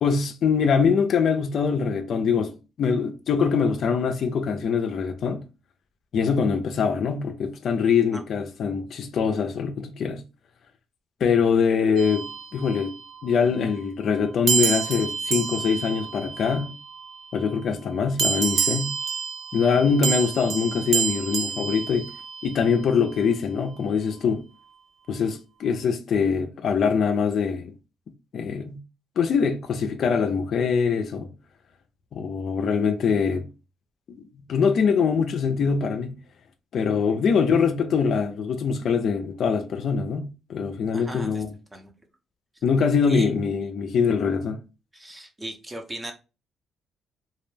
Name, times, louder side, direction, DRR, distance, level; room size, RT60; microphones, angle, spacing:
voice 1, 0.0-5.4 6.1-10.2 11.2-12.3 12.5-12.9 13.2-16.7 17.3-18.9 19.5-22.1 22.4-24.4 25.1-27.7 28.3-28.8 29.2-31.3 32.1-33.5 34.1-34.2 34.5-36.2 36.7-41.5 42.6-44.6, left 6 dB, 65° left, 0.4 m, -23 dB
sound 1, 12.0-13.2 14.5-17.2 18.2-22.7, right 7 dB, 65° right, 0.3 m, -28 dB
voice 2, 40.9-41.4 41.7-41.9 43.1-43.3 44.9-46.1, right 1 dB, 15° right, 0.6 m, -37 dB
2.3 x 2.1 x 3.2 m
cardioid pair, 90°, 0 cm